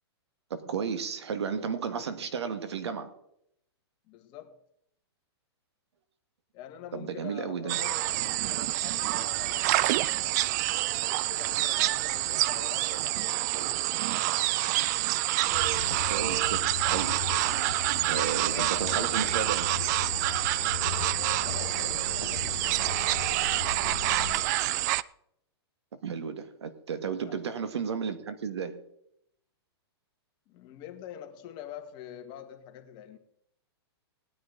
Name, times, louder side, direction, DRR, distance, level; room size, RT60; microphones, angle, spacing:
voice 1, 0.5-3.1 6.9-7.8 16.1-17.2 18.1-19.7 26.0-28.8, right 6 dB, 85° right, 1.8 m, -33 dB
voice 2, 4.1-4.6 6.5-10.4 10.9-13.9 18.4-19.5 21.0-22.9 27.1-27.4 30.5-33.2, left 10 dB, 35° left, 1.7 m, -46 dB
sound 1, 7.7-25.0, right 17 dB, 40° right, 0.4 m, -27 dB
sound 2, 15.5-24.4, left 8 dB, 80° left, 1.5 m, -39 dB
19.0 x 9.6 x 4.0 m
hypercardioid pair, 145°, 14 cm